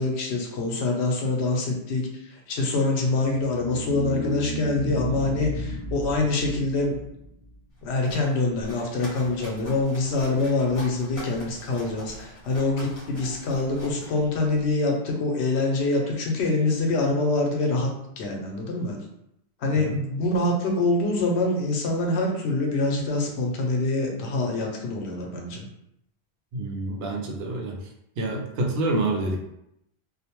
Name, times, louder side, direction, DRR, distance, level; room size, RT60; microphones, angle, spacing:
voice 1, 0.0-6.9 7.8-17.9 18.2-19.0 19.6-25.7, left 2 dB, 85° left, 0 dB, 0.9 m, -25 dB
sound 1, 3.2-7.6, left 1 dB, 40° right, 0.6 m, -33 dB
sound 2, 7.7-14.7, equal, 50° left, 0.9 m, -43 dB
voice 2, 26.5-27.8 28.2-29.4, right 2 dB, 75° right, 1 dB, 0.8 m, -27 dB
2.4 x 2.1 x 2.9 m, 0.79 s
omnidirectional pair, 1.1 m